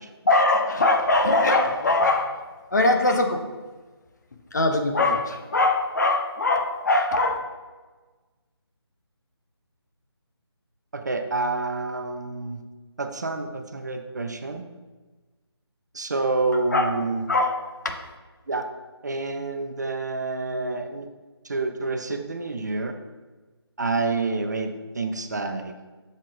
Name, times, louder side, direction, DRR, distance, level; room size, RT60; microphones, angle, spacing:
voice 1, 0.2-3.4 4.5-7.4 16.5-16.9 17.3-17.6, left 2 dB, 40° left, 4 dB, 0.7 m, -22 dB
voice 2, 10.9-12.6 13.0-14.6 15.9-17.2 18.5-18.7 19.0-21.1 21.4-22.9 23.8-25.7, right 3 dB, 40° right, 6 dB, 0.5 m, -28 dB
7.3 x 6.5 x 2.5 m, 1.3 s
figure-of-eight pair, 155°, 14 cm